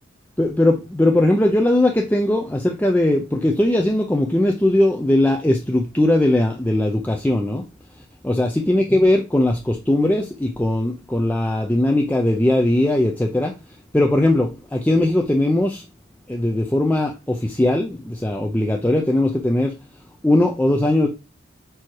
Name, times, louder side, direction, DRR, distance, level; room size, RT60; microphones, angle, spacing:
voice 1, 0.4-7.7 8.2-13.6 13.9-15.8 16.3-19.7 20.2-21.1, left 1 dB, 10° left, 0.5 m, -19 dB
4.8 x 4.6 x 4.6 m
head